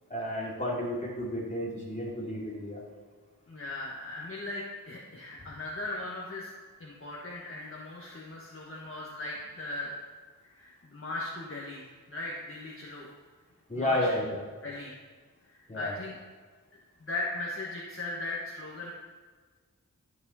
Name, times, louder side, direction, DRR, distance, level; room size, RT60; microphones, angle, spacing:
voice 1, 0.1-2.8 13.7-14.4 15.7-15.9, left 1 dB, 20° left, -4 dB, 2.9 m, -31 dB
voice 2, 3.5-6.5 6.8-10.0 10.4-13.1 13.7-14.4 14.6-14.9 15.5-16.2 17.0-18.9, left 2 dB, 40° left, -4 dB, 1.4 m, -38 dB
13.0 x 4.9 x 4.2 m, 1.5 s
cardioid pair, 45°, 34 cm